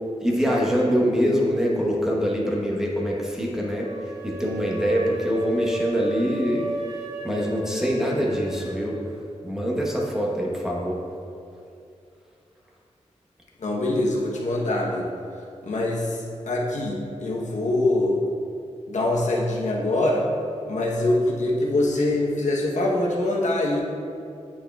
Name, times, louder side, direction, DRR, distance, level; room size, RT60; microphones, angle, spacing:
voice 1, 0.2-6.7 7.2-9.0 9.4-11.0, equal, 5° right, -3 dB, 1.0 m, -24 dB
sound 1, 3.8-8.8, right 1 dB, 65° right, 1.1 m, -35 dB
voice 2, 13.6-15.1 15.6-18.2 18.9-20.2 20.7-23.8, left 1 dB, 80° left, -2 dB, 0.9 m, -24 dB
8.6 x 6.3 x 2.3 m, 2.5 s
wide cardioid pair, 105°, 12 cm